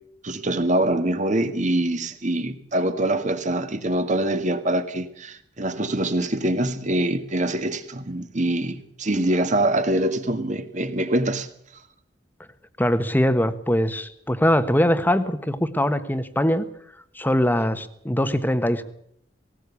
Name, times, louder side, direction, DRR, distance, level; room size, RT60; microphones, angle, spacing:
voice 1, 0.2-11.5, right 1 dB, 45° right, 1.9 m, -24 dB
voice 2, 12.8-16.7 17.1-18.8, equal, 10° left, 1.3 m, -22 dB
18.5 x 18.5 x 8.4 m
head